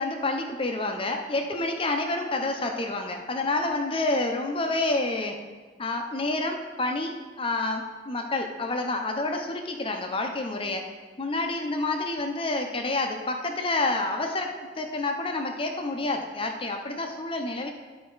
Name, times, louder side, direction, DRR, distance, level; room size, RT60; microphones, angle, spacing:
voice 1, 0.0-5.4 5.8-7.1 7.4-10.9 11.2-17.7, left 2 dB, 25° left, 4 dB, 0.7 m, -28 dB
12.0 x 4.3 x 3.9 m, 1.4 s
head